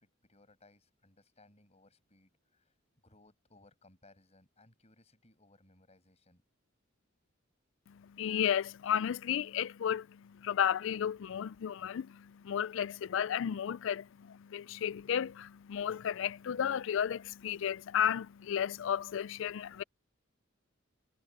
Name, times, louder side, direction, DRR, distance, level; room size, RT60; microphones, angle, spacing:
voice 1, 0.0-6.4, left 2 dB, 30° left, 6.7 m, -64 dB
voice 2, 7.9-19.8, left 9 dB, 65° left, 0.4 m, -33 dB
head